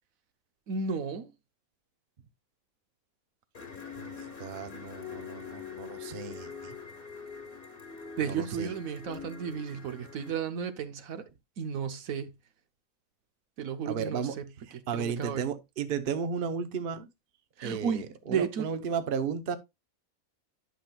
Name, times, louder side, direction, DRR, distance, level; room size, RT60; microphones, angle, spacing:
voice 1, 0.7-1.3 8.2-11.2 11.6-12.3 13.6-14.4 14.7-15.5 17.6-18.7, right 6 dB, 70° right, 1.2 m, -33 dB
sound 1, 3.5-10.4, left 5 dB, 40° left, 1.5 m, -44 dB
voice 2, 4.0-6.7 8.2-8.7 13.8-14.4 14.7-17.1 17.6-19.6, right 6 dB, 45° right, 0.9 m, -34 dB
11.0 x 6.0 x 2.3 m
omnidirectional pair, 1.5 m